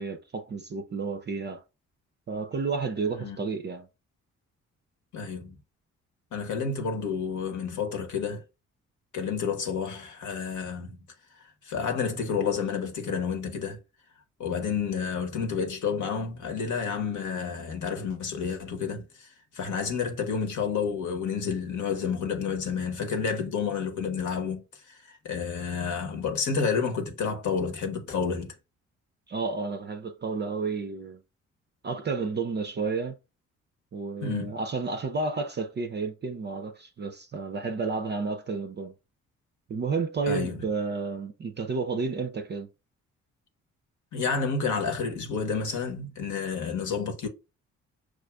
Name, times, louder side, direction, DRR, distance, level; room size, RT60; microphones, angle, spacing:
voice 1, 0.0-1.6 2.3-3.9 29.3-31.2 31.8-33.2 33.9-38.9 39.7-42.7, right 4 dB, 30° right, 0.5 m, -31 dB
voice 2, 5.1-5.6 6.3-8.4 9.1-11.0 11.6-13.8 14.4-19.3 19.5-28.5 34.2-34.6 40.3-40.6 44.1-47.3, left 6 dB, 50° left, 1.0 m, -30 dB
6.1 x 2.4 x 2.3 m
figure-of-eight pair, 40°, 37 cm